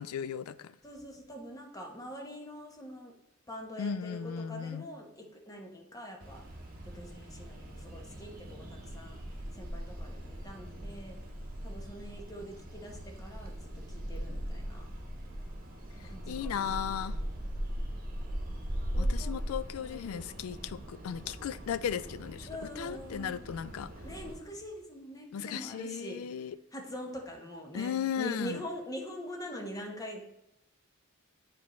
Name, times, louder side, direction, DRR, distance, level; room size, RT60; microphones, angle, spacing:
voice 1, 0.0-0.7 3.8-4.9 16.3-17.2 19.0-22.5 22.8-23.9 25.3-26.6 27.7-28.6, left 8 dB, 80° left, 15 dB, 0.3 m, -36 dB
voice 2, 0.8-3.1 3.5-6.4 6.8-9.2 9.5-11.2 11.6-14.9 16.0-17.3 18.9-19.4 19.8-20.4 22.5-23.5 24.0-26.2 26.7-30.2, equal, 15° left, 1 dB, 1.0 m, -44 dB
sound 1, 6.2-24.3, equal, 45° right, 1.1 m, -39 dB
9.4 x 4.5 x 3.1 m, 0.88 s
head